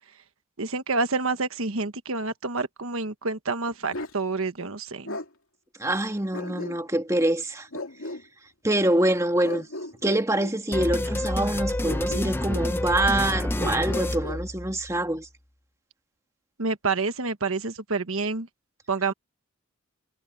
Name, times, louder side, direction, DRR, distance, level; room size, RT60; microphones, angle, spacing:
voice 1, 0.6-5.2 16.6-18.5 18.9-19.1, right 3 dB, 80° right, 1.3 m, -28 dB
Bark, 3.9-4.2 5.1-5.3 6.3-7.1 7.7-8.2 9.4-10.6 11.8-12.7 13.6-14.4, left 1 dB, 75° left, 2.7 m, -36 dB
voice 2, 5.8-7.7 8.6-9.7 10.0-15.3, right 1 dB, 15° right, 1.8 m, -25 dB
sound 1, 10.7-15.0, left 1 dB, 10° left, 0.7 m, -28 dB
head